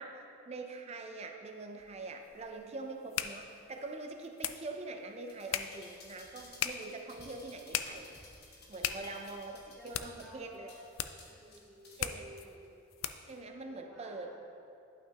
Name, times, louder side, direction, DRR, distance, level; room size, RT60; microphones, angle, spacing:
voice 1, 0.0-10.7 12.0-12.2 13.3-14.4, right 3 dB, 30° right, 4 dB, 0.5 m, -44 dB
sound 1, 1.8-13.4, left 10 dB, 75° left, 0.4 m, -41 dB
sound 2, 5.2-12.2 12.6-12.7, left 2 dB, 55° left, 1.2 m, -56 dB
voice 2, 8.9-9.2 9.8-10.8 11.3-12.7 13.6-14.4, equal, ahead, -8 dB, 1.7 m, -54 dB
11.5 x 5.7 x 2.9 m, 2.6 s
head